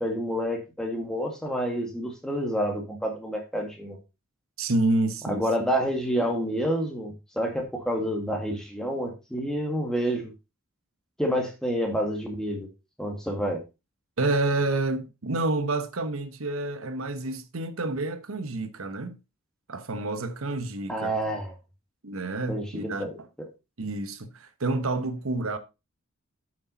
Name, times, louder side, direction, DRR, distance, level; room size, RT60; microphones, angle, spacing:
voice 1, 0.0-4.0 5.3-10.3 11.2-12.7 13.0-13.6 20.9-21.5 22.5-23.1 23.4-23.5, equal, 5° left, 1.9 m, -28 dB
voice 2, 4.6-5.4 14.2-19.2 19.7-21.2 22.0-23.0 23.8-25.6, right 2 dB, 80° right, 1.0 m, -28 dB
8.4 x 6.6 x 4.0 m
head